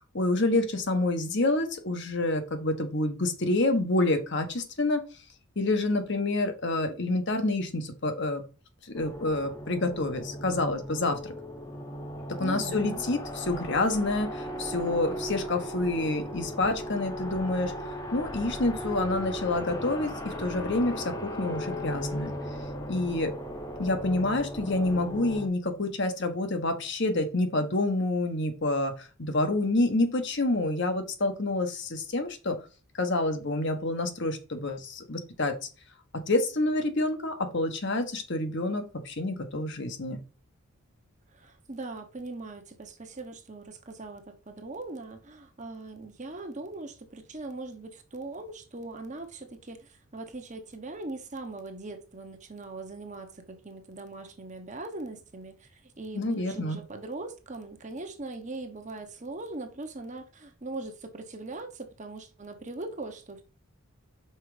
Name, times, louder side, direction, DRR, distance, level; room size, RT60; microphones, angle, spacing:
voice 1, 0.1-5.0 5.6-8.4 8.8-11.3 12.4-17.7 18.1-22.3 22.9-23.3 23.8-32.6 33.0-35.5 36.1-40.2 56.1-56.8, left 2 dB, 55° left, 1.2 m, -28 dB
sound 1, 8.9-25.5, equal, 15° left, 0.9 m, -37 dB
voice 2, 12.4-13.0 41.3-63.4, right 2 dB, 35° right, 1.0 m, -40 dB
5.7 x 4.6 x 4.9 m
head